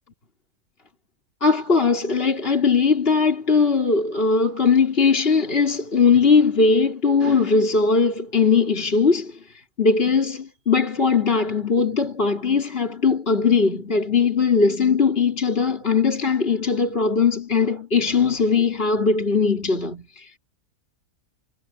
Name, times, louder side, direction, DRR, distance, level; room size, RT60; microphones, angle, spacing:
voice 1, 1.4-9.3 9.8-20.3, left 5 dB, 35° left, 4.2 m, -19 dB
omnidirectional pair, 1.6 m